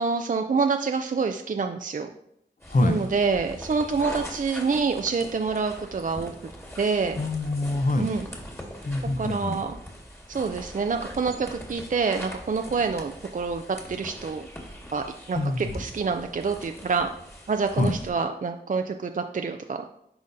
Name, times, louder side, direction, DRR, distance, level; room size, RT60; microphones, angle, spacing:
voice 1, 0.0-2.1 2.8-6.3 6.8-7.2 8.0-8.3 9.2-9.8 10.3-14.5 14.9-17.1 17.5-20.0, right 4 dB, 45° right, 6 dB, 0.4 m, -27 dB
sound 1, 2.6-18.1, equal, 15° left, 1.6 m, -42 dB
voice 2, 2.7-3.1 7.2-8.1 8.8-9.5 15.4-15.8 17.8-17.9, left 2 dB, 50° left, 8 dB, 0.6 m, -25 dB
10.5 x 3.9 x 2.6 m, 0.75 s
wide cardioid pair, 55°, 18 cm